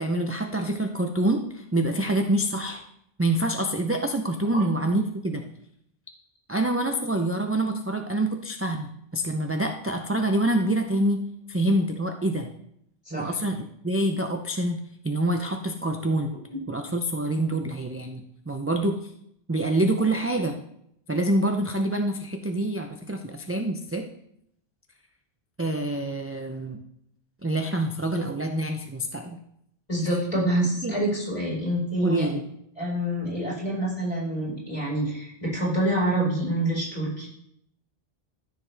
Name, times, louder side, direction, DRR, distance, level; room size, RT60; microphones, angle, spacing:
voice 1, 0.0-2.8 3.2-5.4 6.5-11.2 11.5-12.5 13.1-14.8 15.0-16.3 16.7-19.1 19.5-20.6 21.1-24.0 25.6-26.8 27.4-29.4 30.8-31.0 32.0-32.4, right 1 dB, 20° right, 4 dB, 0.4 m, -26 dB
voice 2, 13.0-13.3 16.5-16.6 29.9-32.3 32.8-37.3, right 1 dB, 30° left, -5 dB, 4.7 m, -27 dB
14.0 x 6.6 x 3.4 m, 0.74 s
omnidirectional pair, 1.1 m